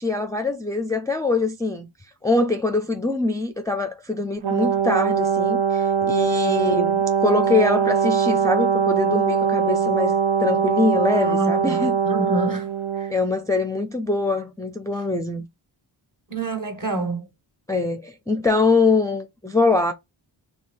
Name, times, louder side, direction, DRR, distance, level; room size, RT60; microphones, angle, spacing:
voice 1, 0.0-1.9 2.2-12.0 13.1-15.4 17.7-19.9, left 3 dB, 5° left, 0.4 m, -23 dB
Brass instrument, 4.4-13.1, right 7 dB, 75° right, 0.8 m, -21 dB
voice 2, 11.1-11.8 12.1-12.7 16.3-17.2, right 1 dB, 40° right, 1.5 m, -27 dB
2.8 x 2.6 x 3.5 m
cardioid pair, 45°, 50 cm